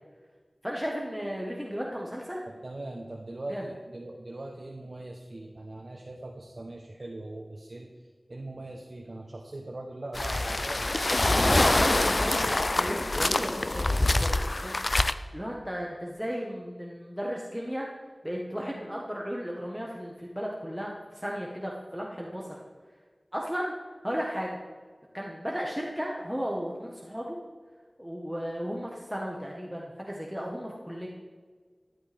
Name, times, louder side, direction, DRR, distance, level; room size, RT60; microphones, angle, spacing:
voice 1, 0.6-2.4 3.5-3.6 11.4-14.8 15.3-17.9 18.2-22.5 23.3-23.7 24.0-24.6 25.1-27.4 28.0-31.1, equal, ahead, -2 dB, 1.4 m, -34 dB
voice 2, 2.5-7.9 8.3-11.9, right 2 dB, 65° right, 1 dB, 1.1 m, -41 dB
sound 1, 10.1-15.1, left 2 dB, 50° left, 0.4 m, -25 dB
14.0 x 11.0 x 3.5 m, 1.5 s
wide cardioid pair, 60°, 0 cm